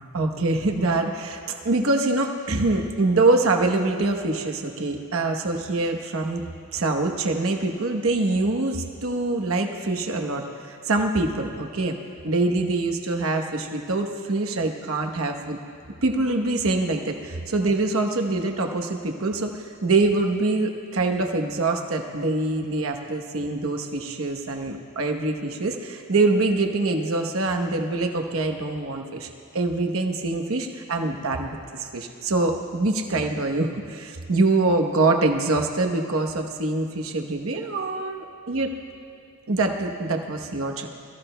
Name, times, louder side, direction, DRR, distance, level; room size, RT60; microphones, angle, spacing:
voice 1, 0.0-6.5 6.7-12.0 12.2-15.6 16.0-29.3 29.5-38.7 39.5-40.9, right 2 dB, 70° right, 4 dB, 1.0 m, -24 dB
22.5 x 14.5 x 2.2 m, 2.5 s
head